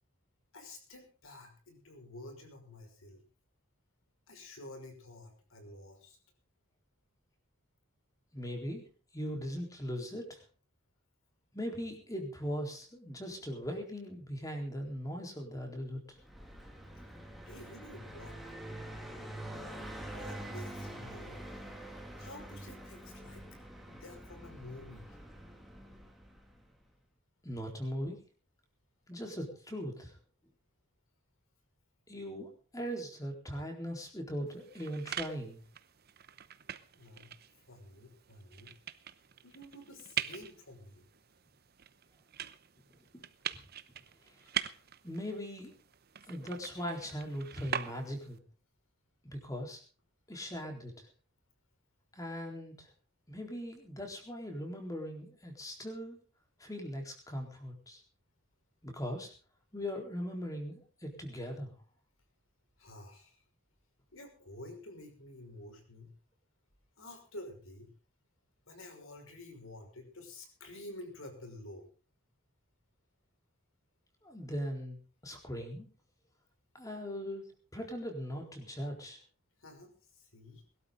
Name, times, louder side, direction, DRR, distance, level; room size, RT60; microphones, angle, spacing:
voice 1, 0.5-3.2 4.3-6.2 16.9-17.0 17.4-18.4 19.8-21.4 22.2-23.6 23.9-25.2 36.9-38.7 39.4-41.1 44.3-44.9 62.8-63.4 64.1-66.1 67.0-67.9 68.7-71.9 79.6-80.6, left 1 dB, 75° left, 5 dB, 5.7 m, -50 dB
voice 2, 8.3-8.8 9.1-10.4 11.5-16.2 27.4-28.2 29.1-30.2 32.1-35.6 43.1-43.2 45.0-45.7 46.3-48.4 49.2-49.8 50.3-51.1 52.1-52.9 53.3-56.2 56.6-58.0 58.8-59.3 59.7-61.7 74.2-75.0 75.2-75.9 76.7-77.5 77.7-79.2, equal, 15° left, 2 dB, 4.1 m, -39 dB
Car passing by, 16.1-26.8, right 1 dB, ahead, 2.6 m, -46 dB
sound 1, 34.5-48.4, right 9 dB, 45° right, 0.9 m, -43 dB
22.5 x 12.5 x 3.9 m, 0.37 s
head